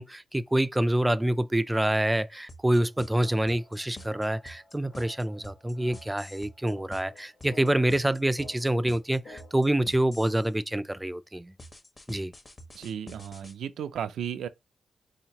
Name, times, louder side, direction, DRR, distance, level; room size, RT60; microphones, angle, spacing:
voice 1, 0.0-11.5 12.1-12.3, right 1 dB, 10° right, 0.4 m, -26 dB
sound 1, 2.5-10.5 11.6-13.5, left 1 dB, 30° left, 1.1 m, -47 dB
sound 2, 2.7-9.7, left 2 dB, 60° left, 1.4 m, -52 dB
voice 2, 12.7-14.5, right 9 dB, 85° right, 0.4 m, -34 dB
4.2 x 2.8 x 2.8 m
cardioid pair, 80°, 0 cm